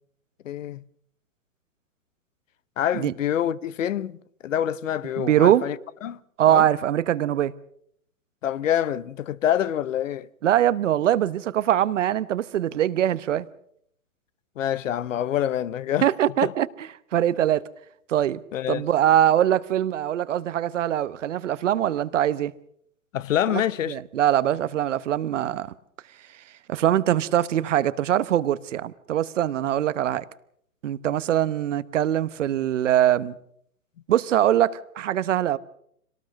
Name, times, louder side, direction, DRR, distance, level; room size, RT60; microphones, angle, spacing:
voice 1, 0.4-0.8 2.8-4.2 4.4-5.8 6.0-6.2 6.5-6.7 8.4-10.3 14.6-16.0 16.4-16.5 18.5-18.9 23.1-24.0, left 10 dB, 60° left, 0.9 m, -26 dB
voice 2, 5.2-5.7 6.4-7.5 10.4-13.5 16.0-16.7 17.1-17.7 18.1-18.4 18.7-22.5 23.5-23.6 23.9-25.7 26.7-30.2 30.8-33.4 34.1-35.6, right 11 dB, 55° right, 1.0 m, -22 dB
25.5 x 18.5 x 6.4 m
hypercardioid pair, 125°, 44 cm